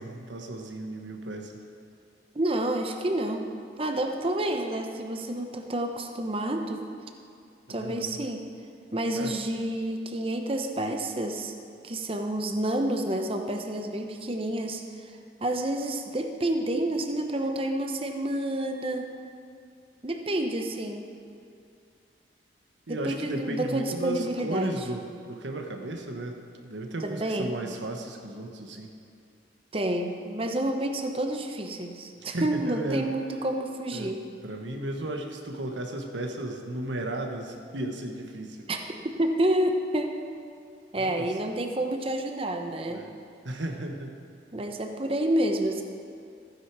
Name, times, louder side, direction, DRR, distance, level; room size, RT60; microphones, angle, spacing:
voice 1, 0.0-1.6 7.7-8.2 9.1-9.3 22.9-28.9 32.2-33.1 33.9-34.1 34.4-38.7 41.0-41.3 42.9-43.2 43.4-44.2, right 1 dB, 85° right, 3 dB, 1.3 m, -35 dB
voice 2, 2.3-3.4 3.8-6.9 7.7-8.4 8.9-11.5 11.8-15.1 15.4-19.0 20.0-21.1 22.9-24.8 27.0-27.5 29.7-34.2 38.7-38.8 39.2-40.2 40.9-43.0 44.5-45.8, right 1 dB, 30° right, 4 dB, 0.9 m, -29 dB
15.0 x 9.6 x 4.8 m, 2.5 s
head